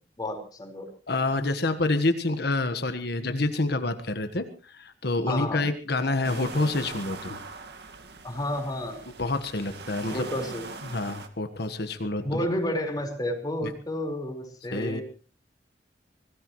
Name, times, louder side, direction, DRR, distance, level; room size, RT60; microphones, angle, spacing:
voice 1, 0.2-0.9 5.3-5.6 8.2-9.0 10.1-10.6 12.2-15.0, left 1 dB, 25° left, 3 dB, 4.7 m, -31 dB
voice 2, 1.1-7.4 9.2-10.3 10.8-12.4 13.6-13.7 14.7-15.0, left 2 dB, 65° left, 8 dB, 1.5 m, -28 dB
sound 1, 6.2-11.3, right 4 dB, 65° right, 1.9 m, -41 dB
25.0 x 18.0 x 3.2 m, 0.36 s
head